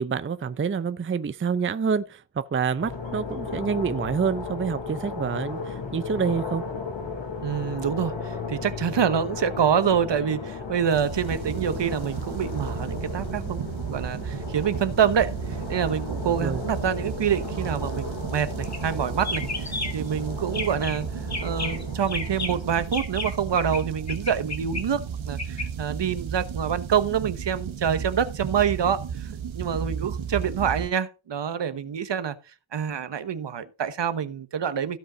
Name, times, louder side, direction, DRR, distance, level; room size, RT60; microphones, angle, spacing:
voice 1, 0.0-6.6 16.3-16.6, right 6 dB, 30° right, 0.5 m, -27 dB
sound 1, 2.8-22.7, left 4 dB, 70° left, 3.1 m, -35 dB
voice 2, 7.4-21.1 21.4-32.3 32.7-35.0, right 8 dB, 65° right, 1.1 m, -26 dB
sound 2, 10.9-30.9, right 7 dB, 90° right, 1.1 m, -33 dB
sound 3, 18.6-18.9 19.2-20.1 20.5-21.0 21.3-23.8 24.1-25.7, left 3 dB, 35° left, 2.0 m, -33 dB
15.5 x 5.3 x 5.0 m
wide cardioid pair, 125°, 46 cm